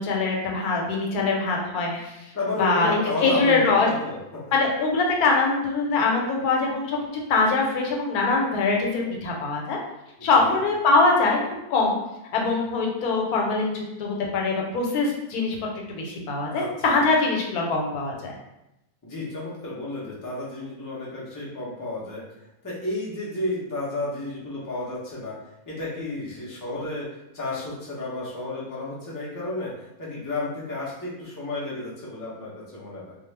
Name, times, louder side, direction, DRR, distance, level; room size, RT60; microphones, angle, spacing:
voice 1, 0.0-2.1 2.6-3.9 4.5-7.0 7.3-9.8 10.2-12.0 12.3-15.6 15.9-18.3, left 3 dB, 90° left, 0 dB, 1.1 m, -23 dB
voice 2, 2.3-4.4 10.2-10.6 16.5-17.0 19.0-22.2 22.6-25.3 25.7-27.1 27.3-33.2, left 2 dB, 30° left, -6 dB, 0.3 m, -32 dB
2.3 x 2.3 x 3.1 m, 0.88 s
omnidirectional pair, 1.5 m